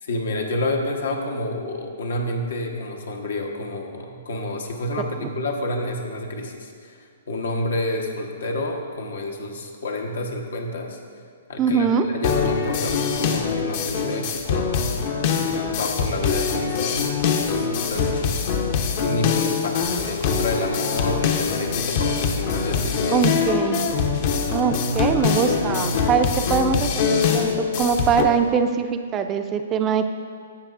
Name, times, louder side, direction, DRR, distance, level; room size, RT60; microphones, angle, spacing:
voice 1, 0.0-6.9 7.3-11.0 11.5-14.7 15.3-17.2 17.5-18.4 19.0-23.3, left 2 dB, 75° left, 2 dB, 1.1 m, -29 dB
voice 2, 11.6-12.1 23.1-23.9 24.5-30.1, right 6 dB, 25° right, 7 dB, 0.4 m, -22 dB
sound 1, 12.2-28.2, left 6 dB, 50° left, 0.8 m, -23 dB
16.0 x 5.8 x 2.5 m, 2.2 s
hypercardioid pair, 140°, 0 cm